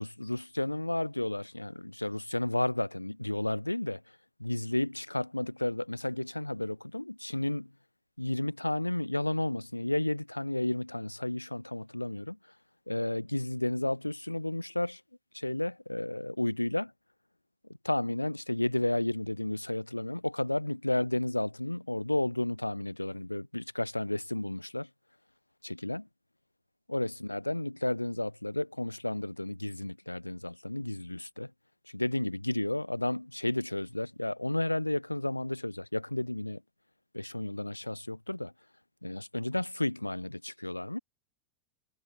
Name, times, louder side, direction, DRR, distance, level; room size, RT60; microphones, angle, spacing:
voice 1, 0.0-4.0 4.4-7.7 8.2-12.4 12.9-15.0 15.3-16.9 17.8-24.9 25.6-26.1 26.9-31.5 31.9-36.6 37.1-38.5 39.0-41.0, left 1 dB, 85° left, 1.2 m, -32 dB
figure-of-eight pair, 90°, 0 cm